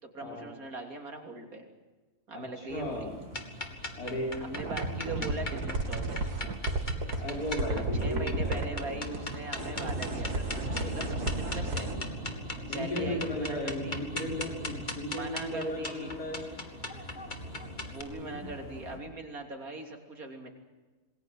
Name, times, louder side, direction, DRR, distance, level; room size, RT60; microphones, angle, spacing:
voice 1, 0.0-1.7 2.3-3.1 4.4-6.2 7.9-12.1 12.7-13.9 15.1-16.1 17.9-20.5, right 2 dB, 65° right, 3 dB, 3.6 m, -40 dB
voice 2, 2.3-3.1 4.0-4.4 7.1-8.9 12.7-16.4 18.2-18.4, left 1 dB, 75° left, -1 dB, 6.4 m, -36 dB
sound 1, 2.7-19.0, equal, 40° right, 5.6 m, -42 dB
sound 2, 3.3-18.0, left 2 dB, 30° left, 2.2 m, -40 dB
sound 3, 4.5-8.6 9.1-11.9, right 2 dB, 85° right, 2.8 m, -33 dB
27.5 x 20.5 x 7.8 m, 1.3 s
omnidirectional pair, 1.6 m